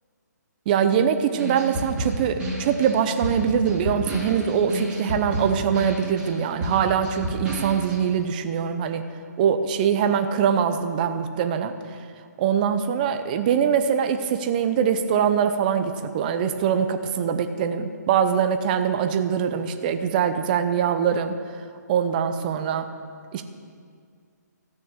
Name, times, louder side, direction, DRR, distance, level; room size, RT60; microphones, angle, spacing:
voice 1, 0.7-9.1 9.4-11.7 12.4-21.4 21.9-22.9 23.3-23.4, right 7 dB, 30° right, 8 dB, 0.7 m, -23 dB
sound 1, 1.4-8.0, right 1 dB, 10° right, 3.1 m, -30 dB
14.5 x 6.6 x 7.2 m, 2.1 s
hypercardioid pair, 155°, 10 cm